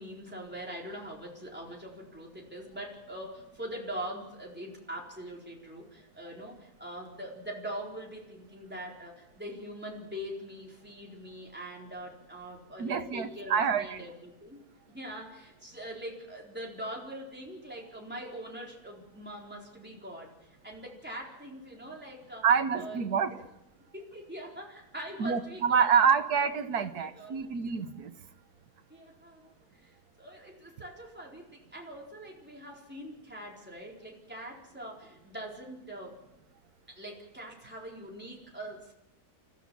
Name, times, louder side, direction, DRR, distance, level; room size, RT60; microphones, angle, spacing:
voice 1, 0.0-22.5 22.8-23.0 23.3-23.4 23.9-25.9 26.7-27.4 28.9-36.2 36.9-38.9, right 1 dB, 5° right, -2 dB, 4.3 m, -43 dB
voice 2, 12.8-14.0 22.4-23.3 25.2-28.1, right 6 dB, 80° right, 9 dB, 1.7 m, -27 dB
30.0 x 14.5 x 7.1 m, 0.91 s
omnidirectional pair, 1.6 m